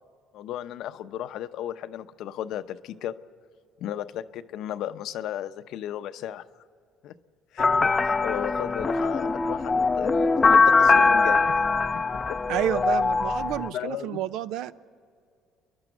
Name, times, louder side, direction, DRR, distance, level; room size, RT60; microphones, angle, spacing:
voice 1, 0.3-3.1 3.8-6.4 7.0-7.1 7.5-11.4 11.9-12.0 13.7-14.2, left 11 dB, 70° left, 11 dB, 0.7 m, -34 dB
sound 1, 7.6-13.7, left 4 dB, 20° left, 0.5 m, -22 dB
voice 2, 12.5-14.7, right 11 dB, 75° right, 15 dB, 0.6 m, -29 dB
30.0 x 11.5 x 8.1 m, 2.3 s
cardioid pair, 105°, 0 cm